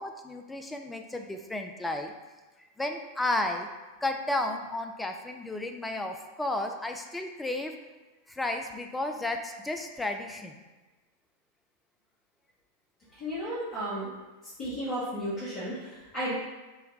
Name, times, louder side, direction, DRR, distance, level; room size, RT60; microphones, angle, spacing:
voice 1, 0.0-2.1 2.8-3.7 4.0-7.7 8.3-10.6, left 2 dB, 5° left, 4 dB, 0.3 m, -33 dB
voice 2, 13.2-14.1 14.6-16.3, equal, 30° left, -10 dB, 1.1 m, -33 dB
3.9 x 2.1 x 3.9 m, 1.2 s
figure-of-eight pair, 90°, 0 cm